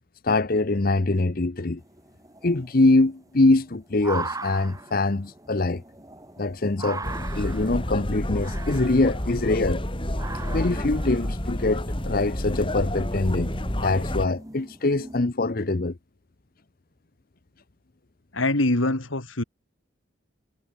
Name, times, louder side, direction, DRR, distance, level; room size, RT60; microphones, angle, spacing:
voice 1, 0.2-1.8 2.4-5.8 6.4-7.0 7.4-9.8 10.5-13.5 13.8-15.9, left 2 dB, 50° left, 0.9 m, -23 dB
sound 1, 1.8-15.2, right 3 dB, 15° right, 3.8 m, -40 dB
sound 2, 7.0-14.3, left 1 dB, 25° left, 3.2 m, -29 dB
voice 2, 18.3-19.4, left 2 dB, 85° left, 2.5 m, -24 dB
head